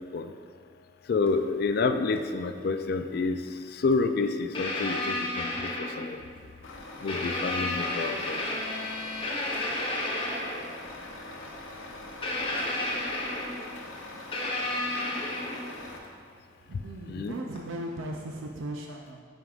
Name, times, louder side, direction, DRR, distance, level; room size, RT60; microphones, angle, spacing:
voice 1, 1.1-6.2 6.6-6.7 7.0-8.6 17.1-17.3, left 4 dB, 50° left, 8 dB, 0.3 m, -29 dB
sound 1, 1.3-1.4 2.2-2.3 3.9-4.0 4.5-6.2 7.1-10.7 12.2-13.7 14.3-15.8 17.6-17.7, left 1 dB, 25° left, 0.8 m, -32 dB
Truck, 6.6-16.0, left 2 dB, 80° left, 0.8 m, -43 dB
voice 2, 16.7-19.2, right 1 dB, 80° right, 2 dB, 0.4 m, -37 dB
9.3 x 5.1 x 2.4 m, 2.1 s
head